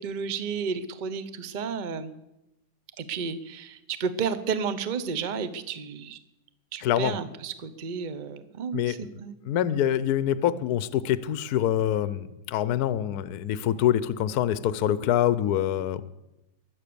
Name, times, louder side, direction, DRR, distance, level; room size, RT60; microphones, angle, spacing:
voice 1, 0.0-2.1 3.0-6.2 6.7-9.4, right 6 dB, 35° right, 12 dB, 0.8 m, -32 dB
voice 2, 6.8-7.1 8.7-9.0 9.4-16.0, left 11 dB, 65° left, 16 dB, 1.2 m, -25 dB
22.5 x 8.2 x 6.9 m, 0.93 s
omnidirectional pair, 2.0 m